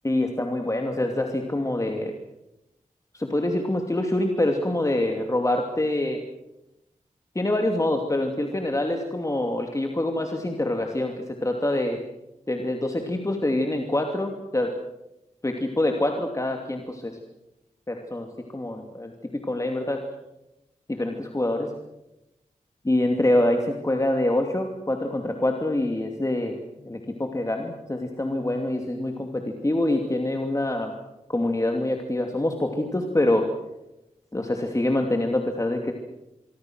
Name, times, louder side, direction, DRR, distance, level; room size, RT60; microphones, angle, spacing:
voice 1, 0.0-2.1 3.1-6.2 7.3-11.1 11.4-12.0 12.5-14.7 15.4-17.1 17.9-18.3 18.5-20.0 20.9-21.7 22.9-30.9 31.3-33.5 34.3-35.9, left 1 dB, 25° left, 3 dB, 2.7 m, -25 dB
26.5 x 23.5 x 6.3 m, 0.90 s
wide cardioid pair, 105°, 14 cm